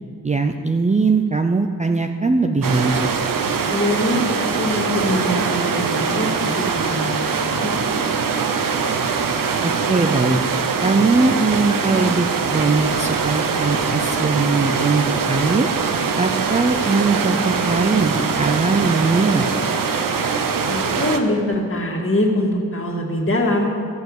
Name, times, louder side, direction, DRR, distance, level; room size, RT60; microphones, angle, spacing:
voice 1, 0.2-3.1 9.6-10.4 10.8-15.7 16.2-19.4, right 3 dB, 20° right, 4 dB, 0.5 m, -20 dB
sound 1, 2.6-21.2, right 5 dB, 65° right, 0.9 m, -22 dB
voice 2, 3.7-7.7 20.7-23.7, left 1 dB, 35° left, -1 dB, 2.2 m, -23 dB
14.5 x 6.9 x 8.0 m, 2.3 s
wide cardioid pair, 110°, 35 cm